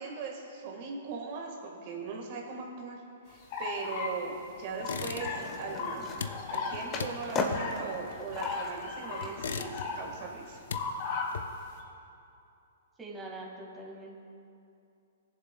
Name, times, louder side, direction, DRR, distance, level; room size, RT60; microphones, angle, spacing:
voice 1, 0.0-3.0 3.3-6.1 6.5-10.7, right 4 dB, 45° right, 0 dB, 1.6 m, -39 dB
sound 1, 3.5-4.2 4.8-6.0 6.2-7.1 7.4-7.8 8.3-10.3 10.7-11.3, left 5 dB, 45° left, 2.1 m, -36 dB
sound 2, 4.8-5.6 5.8-8.8 9.2-10.1 10.4-11.8, left 6 dB, 75° left, 0.6 m, -39 dB
Skateboard, 4.8-10.1, left 3 dB, 25° left, 1.0 m, -39 dB
voice 2, 13.0-14.2, right 2 dB, 15° right, -2 dB, 1.7 m, -43 dB
20.0 x 7.4 x 2.3 m, 2.6 s
hypercardioid pair, 130°, 0 cm